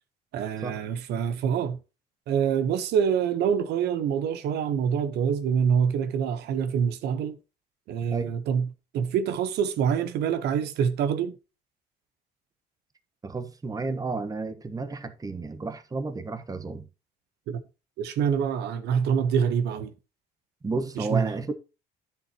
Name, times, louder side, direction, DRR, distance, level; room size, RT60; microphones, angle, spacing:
voice 1, 0.3-1.8 2.3-7.4 7.9-8.7 8.9-11.3 17.5-17.6 18.0-19.9 21.0-21.3, right 7 dB, 75° right, 1.1 m, -26 dB
voice 2, 13.2-16.9 20.6-21.5, right 3 dB, 20° right, 1.3 m, -32 dB
10.5 x 7.3 x 2.9 m
cardioid pair, 110°, 17 cm